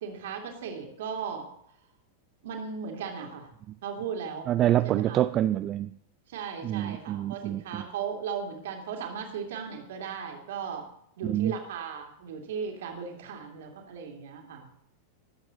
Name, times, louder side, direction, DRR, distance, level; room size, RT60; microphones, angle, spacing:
voice 1, 0.0-1.5 2.4-3.5 3.8-4.5 4.8-5.2 6.3-10.9 11.2-14.7, right 6 dB, 55° right, 2 dB, 2.8 m, -37 dB
voice 2, 4.5-5.9 6.6-7.8 11.2-11.5, right 12 dB, 30° right, 12 dB, 0.4 m, -26 dB
21.5 x 8.1 x 4.0 m, 0.71 s
figure-of-eight pair, 90°, 0 cm